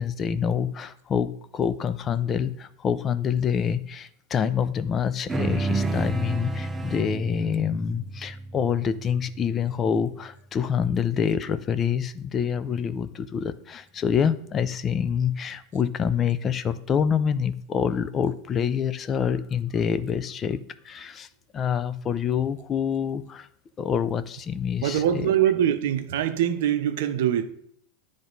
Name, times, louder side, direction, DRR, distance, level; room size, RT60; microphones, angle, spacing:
voice 1, 0.0-21.3 21.5-23.5 23.8-25.3, left 7 dB, 30° left, 0.4 m, -26 dB
sound 1, 5.3-10.0, right 2 dB, 15° right, 0.6 m, -30 dB
voice 2, 24.8-27.5, right 10 dB, 65° right, 0.6 m, -23 dB
10.0 x 3.3 x 4.0 m
hypercardioid pair, 90°, 0 cm